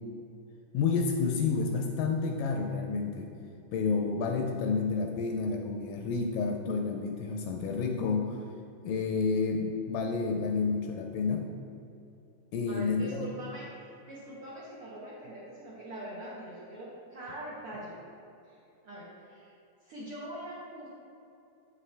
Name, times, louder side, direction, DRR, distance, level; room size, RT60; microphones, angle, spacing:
voice 1, 0.7-3.3 3.7-8.4 8.8-11.5 12.5-13.3, left 4 dB, 80° left, 3 dB, 2.0 m, -30 dB
voice 2, 12.7-18.0 18.4-19.5 19.8-20.9, right 1 dB, 80° right, -6 dB, 1.2 m, -43 dB
8.1 x 7.4 x 3.3 m, 2.7 s
omnidirectional pair, 4.3 m